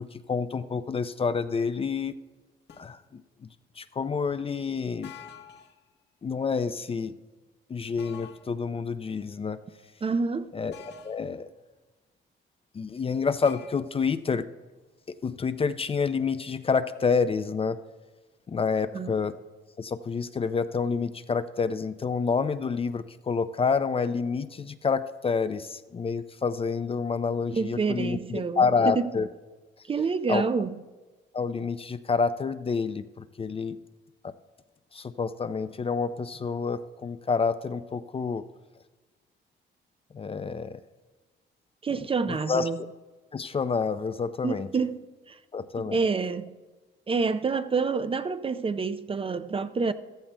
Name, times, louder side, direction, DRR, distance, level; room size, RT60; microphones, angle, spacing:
voice 1, 0.0-2.2 2.8-3.5 3.8-5.1 6.2-7.1 7.7-9.6 10.5-10.8 11.0-11.5 12.7-14.5 15.2-17.8 18.5-19.3 19.8-29.3 30.3-30.4 31.3-33.8 34.2-34.3 34.9-38.4 40.1-40.8 41.9-42.7 43.3-44.7 45.5-46.0, left 5 dB, 30° left, 0.4 m, -28 dB
sound 1, 2.7-3.0 5.0-5.8 8.0-8.5 10.7-11.3 13.4-13.8, left 6 dB, 60° left, 1.0 m, -47 dB
voice 2, 10.0-10.5 18.9-19.1 27.5-29.1 29.9-30.7 41.8-42.8 44.4-45.0 45.3-45.4 45.9-46.5 47.1-49.9, right 4 dB, 30° right, 0.5 m, -28 dB
14.5 x 14.0 x 2.2 m
cardioid pair, 90°, 20 cm